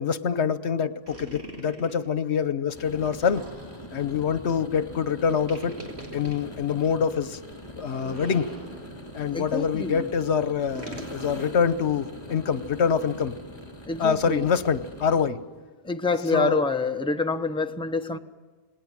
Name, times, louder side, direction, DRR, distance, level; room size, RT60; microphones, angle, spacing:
voice 1, 0.0-3.4 3.9-5.8 6.1-7.4 7.8-8.5 9.1-13.3 14.0-15.4 16.3-16.6, left 6 dB, 75° left, 1.2 m, -25 dB
sound 1, 1.1-2.0 3.2-4.0 5.5-6.4 7.8-9.1 10.7-11.2, right 1 dB, 70° right, 4.6 m, -42 dB
sound 2, 2.7-15.3, equal, 25° left, 2.8 m, -42 dB
voice 2, 9.3-10.1 13.8-14.5 15.8-18.2, left 3 dB, 5° left, 0.9 m, -27 dB
28.0 x 20.0 x 7.5 m
omnidirectional pair, 1.1 m